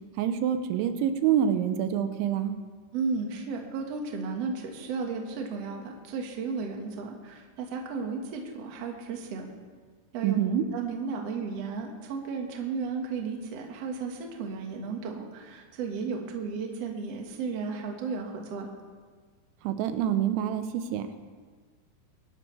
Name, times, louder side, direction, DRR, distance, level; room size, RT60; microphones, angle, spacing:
voice 1, 0.2-2.6 10.2-10.6 19.6-21.1, right 9 dB, 90° right, 8 dB, 3.2 m, -26 dB
voice 2, 2.9-9.4 10.1-10.4 10.7-18.7, right 5 dB, 65° right, 1 dB, 1.6 m, -34 dB
22.5 x 11.5 x 3.3 m, 1.5 s
omnidirectional pair, 5.3 m